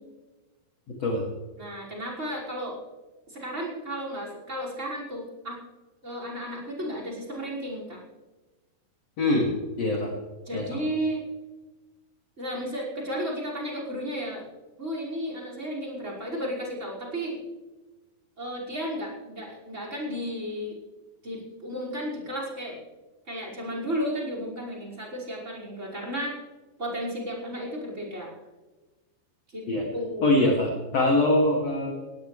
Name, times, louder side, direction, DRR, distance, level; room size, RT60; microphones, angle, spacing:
voice 1, 1.6-2.8 3.3-5.6 6.0-8.0 10.5-11.2 12.4-14.5 14.8-17.4 18.4-20.8 21.2-22.8 23.3-26.3 26.8-28.3 29.5-29.6 29.9-30.4, equal, 15° right, -1 dB, 5.4 m, -33 dB
voice 2, 9.8-10.1 10.5-10.8 29.7-29.8 30.2-31.9, left 1 dB, 45° left, -1 dB, 3.0 m, -23 dB
19.5 x 18.0 x 3.3 m, 1.2 s
omnidirectional pair, 4.7 m